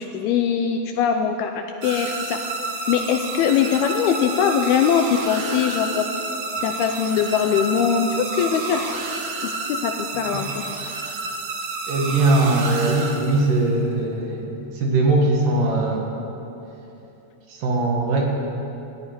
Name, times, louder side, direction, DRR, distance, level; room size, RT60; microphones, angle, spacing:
voice 1, 0.0-2.4 2.9-6.1 6.6-8.9 9.4-10.6, left 7 dB, 80° left, 5 dB, 2.4 m, -22 dB
sound 1, 1.8-13.7, right 3 dB, 90° right, 1.4 m, -30 dB
voice 2, 11.9-16.1 17.5-18.2, right 2 dB, 60° right, 0 dB, 2.7 m, -20 dB
15.0 x 9.5 x 9.5 m, 3.0 s
omnidirectional pair, 4.9 m